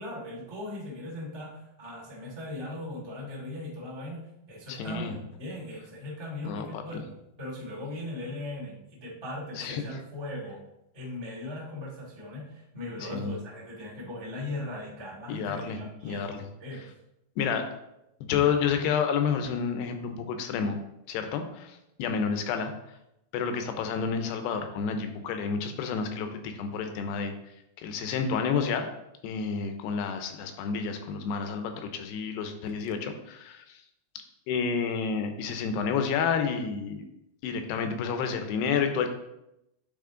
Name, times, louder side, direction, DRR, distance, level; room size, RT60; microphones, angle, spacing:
voice 1, 0.0-7.0 7.4-10.6 10.9-16.9, left 1 dB, 20° right, -6 dB, 0.7 m, -39 dB
voice 2, 4.7-5.2 6.4-6.8 9.6-9.8 13.0-13.3 15.3-15.8 16.0-16.5 17.4-17.7 18.2-20.8 21.1-22.7 23.3-27.3 27.8-28.9 29.2-33.6 34.5-37.0 37.4-39.1, left 6 dB, 80° left, 7 dB, 2.8 m, -30 dB
9.2 x 4.2 x 3.8 m, 0.86 s
omnidirectional pair, 4.7 m